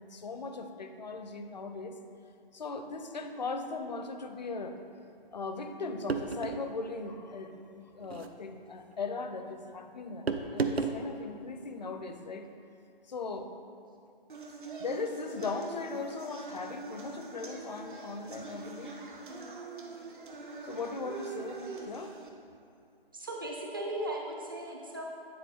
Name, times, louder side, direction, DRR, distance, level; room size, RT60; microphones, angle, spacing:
voice 1, 0.0-2.0 2.5-4.8 5.3-12.5 13.1-13.5 14.8-19.0 20.6-22.2, left 3 dB, 45° left, 7 dB, 0.5 m, -38 dB
sound 1, 6.1-6.7 8.0-8.3 10.3-11.0, right 4 dB, 85° right, 0.6 m, -32 dB
sound 2, 14.3-22.3, right 3 dB, 55° right, 0.9 m, -44 dB
voice 2, 23.1-25.0, right 1 dB, 20° right, -1 dB, 0.5 m, -37 dB
9.3 x 4.3 x 4.3 m, 2.5 s
figure-of-eight pair, 145°, 30 cm